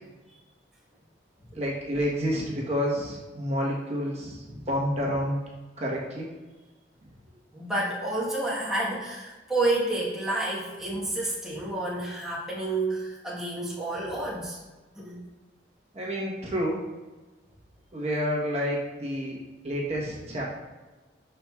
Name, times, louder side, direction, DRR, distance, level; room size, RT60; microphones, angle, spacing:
voice 1, 1.5-5.4 5.8-6.3 15.9-16.8 17.9-19.4 19.6-20.4, equal, 35° right, -4 dB, 1.1 m, -29 dB
voice 2, 7.5-14.6 14.9-15.2, right 2 dB, 5° right, -7 dB, 1.2 m, -30 dB
11.0 x 4.4 x 2.4 m, 1.2 s
head